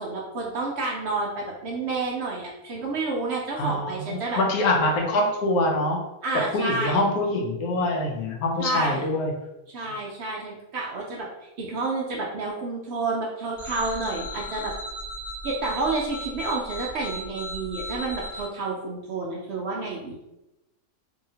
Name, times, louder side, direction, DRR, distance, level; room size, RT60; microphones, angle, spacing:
voice 1, 0.0-4.4 6.2-7.1 8.6-9.1 9.7-14.7 15.4-20.2, right 3 dB, 65° right, -2 dB, 0.6 m, -30 dB
voice 2, 3.6-6.0 6.5-9.3, left 2 dB, 80° left, 1 dB, 1.1 m, -24 dB
sound 1, 13.6-18.4, equal, 10° right, 1.3 m, -36 dB
2.9 x 2.7 x 2.7 m, 0.96 s
omnidirectional pair, 1.6 m